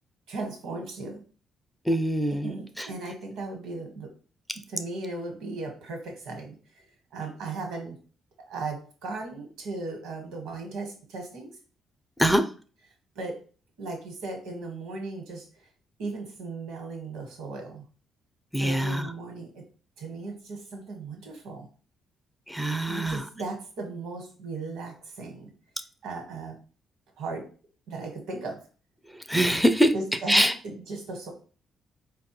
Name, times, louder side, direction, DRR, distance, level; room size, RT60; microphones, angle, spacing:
voice 1, 0.3-1.2 2.4-4.1 4.7-6.6 7.1-8.0 8.5-11.5 13.1-13.4 13.8-15.4 16.0-17.8 18.6-19.6 20.0-21.7 22.9-25.5 26.0-26.6 27.2-27.4 27.9-28.6 29.9-31.3, right 3 dB, 90° right, 3 dB, 1.1 m, -36 dB
voice 2, 1.9-2.5 2.8-2.9 12.2-12.4 18.5-19.1 22.5-23.2 29.3-29.9 30.3-30.5, equal, ahead, 8 dB, 0.3 m, -23 dB
4.4 x 2.2 x 2.8 m, 0.39 s
cardioid pair, 90°, 0 cm